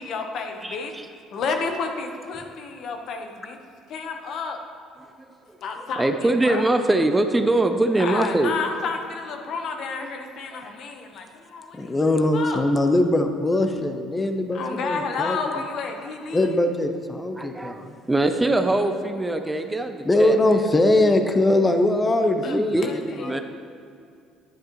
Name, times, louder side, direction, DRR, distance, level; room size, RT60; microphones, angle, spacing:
voice 1, 0.0-0.9 1.3-3.6 3.9-4.6 5.6-6.7 8.0-11.9 12.3-12.6 14.5-16.6 22.4-23.4, left 4 dB, 60° left, 4 dB, 1.0 m, -31 dB
voice 2, 0.6-1.0 6.0-8.6 17.4-17.8 18.1-20.7 22.4-23.4, right 2 dB, 15° right, 7 dB, 0.5 m, -23 dB
voice 3, 11.8-15.4 16.3-17.9 20.0-23.4, left 1 dB, 20° left, 7 dB, 0.7 m, -21 dB
10.0 x 8.6 x 3.0 m, 2.5 s
supercardioid pair, 80°, 0 cm